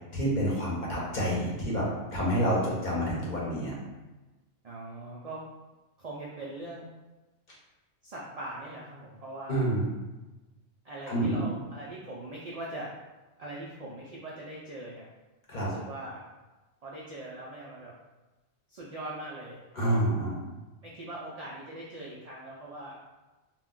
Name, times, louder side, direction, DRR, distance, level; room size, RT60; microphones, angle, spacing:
voice 1, 0.1-3.7 9.5-9.9 11.1-11.4 15.5-15.7 19.7-20.4, right 1 dB, 45° left, -5 dB, 0.7 m, -28 dB
voice 2, 4.6-5.4 6.0-6.9 8.0-9.7 10.8-12.9 13.4-15.1 15.6-16.2 16.8-17.9 18.7-20.0 20.8-23.0, right 1 dB, 70° right, -5 dB, 0.3 m, -41 dB
2.2 x 2.2 x 3.6 m, 1.1 s
omnidirectional pair, 1.2 m